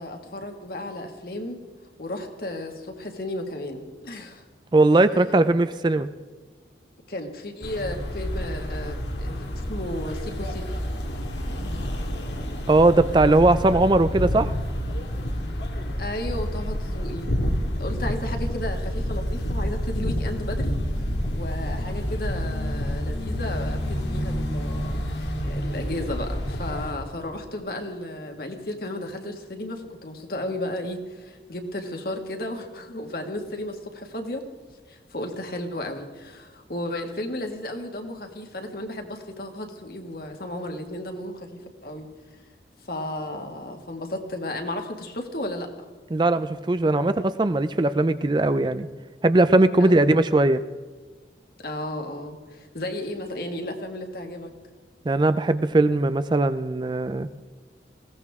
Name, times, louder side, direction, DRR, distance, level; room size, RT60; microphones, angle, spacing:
voice 1, 0.0-1.6 2.0-4.4 7.1-10.7 16.0-17.3 17.8-20.8 21.3-34.4 34.9-42.1 42.8-45.7 49.8-50.1 51.6-54.5, left 1 dB, 55° left, 4 dB, 1.9 m, -34 dB
voice 2, 4.7-6.1 12.7-14.5 46.1-48.9 49.2-50.6 55.1-57.3, right 2 dB, 25° right, 12 dB, 0.4 m, -19 dB
sound 1, 7.6-26.9, equal, 80° left, 2.2 m, -29 dB
20.5 x 17.0 x 3.6 m, 1.4 s
head